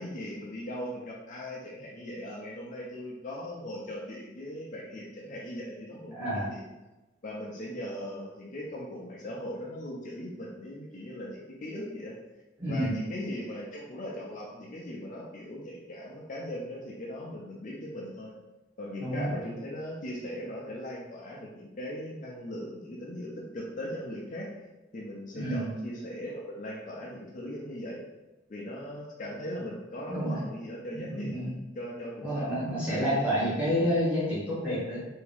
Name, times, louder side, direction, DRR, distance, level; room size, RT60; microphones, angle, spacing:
voice 1, 0.0-6.6 7.2-12.2 12.7-18.3 18.8-24.5 24.9-28.0 28.5-31.4 31.8-33.6, left 1 dB, 45° left, -3 dB, 0.5 m, -39 dB
voice 2, 6.1-6.5 12.6-13.0 19.0-19.4 25.3-25.7 30.0-30.4 30.9-31.5 32.2-35.0, equal, 10° right, -10 dB, 1.5 m, -29 dB
3.5 x 2.7 x 3.3 m, 1.1 s
head